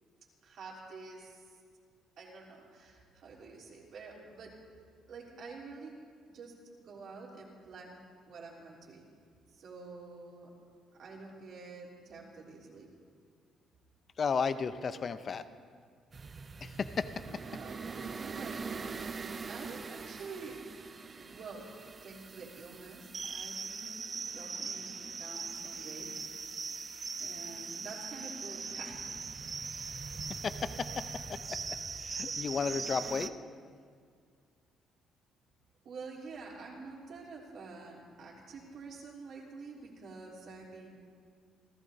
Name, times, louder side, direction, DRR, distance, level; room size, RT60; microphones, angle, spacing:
voice 1, 0.4-1.6 2.2-4.5 5.1-5.9 6.3-8.0 8.3-9.0 9.5-10.5 11.0-12.9 17.4-20.6 21.1-21.7 22.0-26.1 27.2-29.1 35.8-41.0, right 4 dB, 55° right, -4 dB, 3.2 m, -48 dB
voice 2, 14.2-15.4 16.6-17.1 30.4-30.9 31.3-31.4 32.0-33.3, left 5 dB, 30° left, 12 dB, 0.5 m, -33 dB
sound 1, 16.1-33.3, right 5 dB, 25° right, 0.4 m, -41 dB
28.5 x 15.0 x 2.7 m, 2.1 s
cardioid pair, 165°, 0 cm